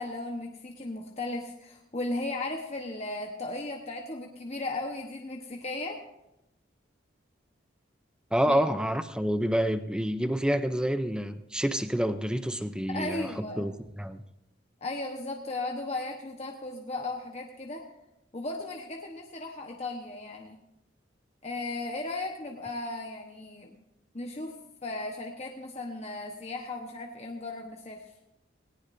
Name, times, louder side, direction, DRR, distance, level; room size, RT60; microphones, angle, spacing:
voice 1, 0.0-6.0 8.5-8.6 12.9-13.7 14.8-17.8 18.3-20.6 21.4-23.8 24.1-24.6 24.8-28.0, left 2 dB, 35° left, 1 dB, 1.1 m, -36 dB
voice 2, 8.3-14.2, equal, 5° right, 10 dB, 0.5 m, -28 dB
18.5 x 18.0 x 2.7 m, 0.88 s
head